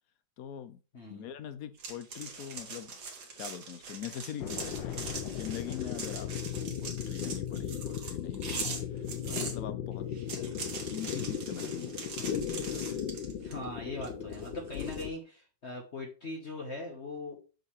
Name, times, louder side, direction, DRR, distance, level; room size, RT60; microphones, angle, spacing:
voice 1, 0.4-0.8 1.1-2.9 3.4-8.8 9.3-10.1 10.3-12.1 12.7-13.0, left 10 dB, 65° left, 0.9 m, -43 dB
voice 2, 0.9-1.3 13.4-17.4, left 2 dB, 40° left, 1.3 m, -40 dB
sound 1, 1.8-9.6 10.1-13.6 14.0-15.0, right 4 dB, 65° right, 2.0 m, -42 dB
sound 2, 4.4-15.1, left 9 dB, 85° left, 1.4 m, -37 dB
6.6 x 6.5 x 3.1 m
omnidirectional pair, 2.0 m